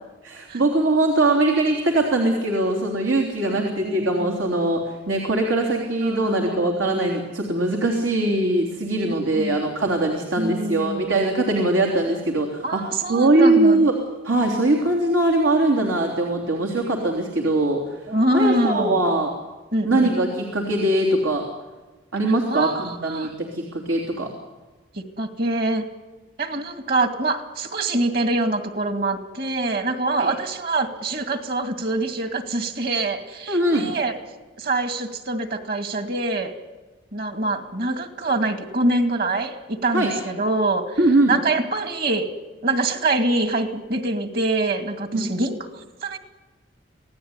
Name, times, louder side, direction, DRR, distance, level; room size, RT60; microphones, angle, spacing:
voice 1, 0.2-12.8 13.1-13.9 14.2-18.0 18.3-19.3 19.8-21.5 22.1-24.3 30.2-30.3 33.5-33.9 39.9-40.1 41.0-41.3 45.1-45.3, right 2 dB, 85° right, 1 dB, 3.4 m, -21 dB
voice 2, 3.4-4.3 6.0-6.8 9.1-9.8 10.4-11.2 12.6-13.9 18.1-19.0 19.7-20.1 22.5-23.3 25.0-25.8 26.4-34.2 34.6-36.5 37.1-41.0 41.3-42.3 42.6-46.2, right 2 dB, 50° right, 6 dB, 2.4 m, -25 dB
27.0 x 17.5 x 9.8 m, 1.2 s
head